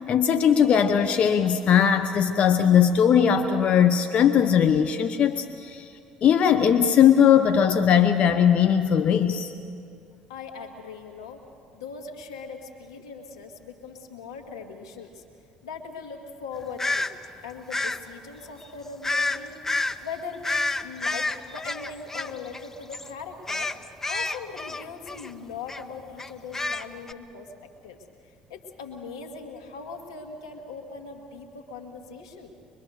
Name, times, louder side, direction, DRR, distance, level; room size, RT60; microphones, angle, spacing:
voice 1, 0.1-5.9 6.2-9.5, left 8 dB, 55° left, 8 dB, 1.0 m, -19 dB
voice 2, 10.3-11.4 11.7-15.2 15.6-17.1 17.4-23.7 24.1-27.5 27.8-32.5, left 5 dB, 90° left, 3 dB, 2.0 m, -40 dB
sound 1, 16.8-17.1 17.7-18.0 19.0-19.4 19.6-20.0 20.4-22.7 22.9-23.1 23.5-25.3 25.7-25.8 26.2-27.1, left 2 dB, 15° left, 0.8 m, -28 dB
24.5 x 22.5 x 6.7 m, 2.4 s
hypercardioid pair, 65°, 3 cm